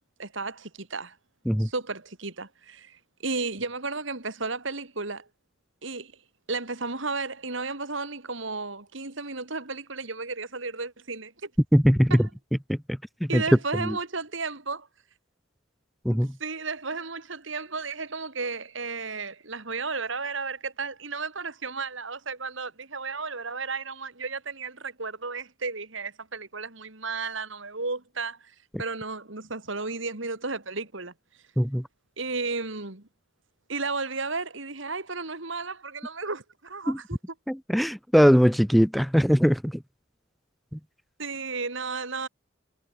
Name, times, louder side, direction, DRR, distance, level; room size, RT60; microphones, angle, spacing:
voice 1, 0.2-1.2 1.6-5.3 5.8-6.1 6.5-11.5 12.1-12.3 13.3-14.9 16.1-28.5 28.8-31.1 32.2-33.1 33.7-37.2 41.2-42.3, right 4 dB, 65° right, 2.7 m, -33 dB
voice 2, 11.7-12.2 12.7-12.8 13.3-13.4 13.8-14.0 16.0-16.3 31.6-31.8 36.9-37.0 37.5-39.7, equal, ahead, 0.8 m, -20 dB
head